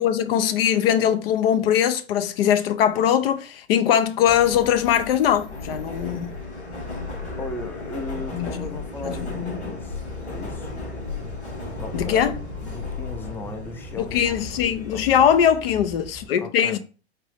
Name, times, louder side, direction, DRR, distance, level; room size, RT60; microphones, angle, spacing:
voice 1, 0.0-6.4 8.3-9.8 11.9-12.4 14.0-16.8, left 9 dB, 65° left, 0.5 m, -21 dB
Subway metro underground, 4.2-16.3, left 3 dB, 90° left, 2.1 m, -35 dB
voice 2, 7.4-10.7 11.8-12.3 12.6-14.5 14.9-15.3 16.4-16.8, left 2 dB, 5° left, 0.5 m, -37 dB
4.2 x 2.6 x 3.4 m
hypercardioid pair, 100°, 32 cm